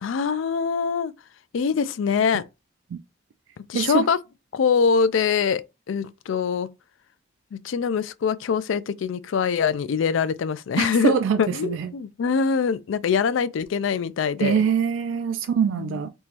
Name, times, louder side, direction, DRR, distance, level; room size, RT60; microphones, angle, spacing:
voice 1, 0.0-1.1 1.5-2.4 3.7-4.2 4.5-5.6 5.9-6.7 7.5-14.6 15.6-16.0, left 6 dB, 85° left, 0.4 m, -23 dB
voice 2, 3.7-4.0 10.8-11.9 14.4-16.1, right 7 dB, 80° right, 0.3 m, -24 dB
3.6 x 2.9 x 2.8 m
head